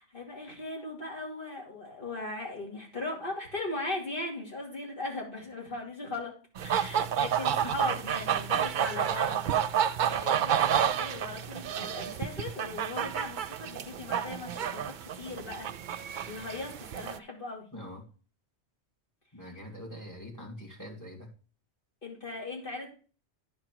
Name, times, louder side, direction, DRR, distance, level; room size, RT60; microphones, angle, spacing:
voice 1, 0.0-6.3 6.6-9.4 10.0-16.0 16.3-17.6 22.0-22.9, left 2 dB, 50° left, -2 dB, 2.9 m, -38 dB
sound 1, 6.6-17.2, right 9 dB, 60° right, 0.5 m, -30 dB
voice 2, 17.7-18.0 19.3-21.3, equal, 15° left, 1 dB, 2.3 m, -43 dB
10.5 x 4.9 x 4.6 m, 0.37 s
omnidirectional pair, 1.2 m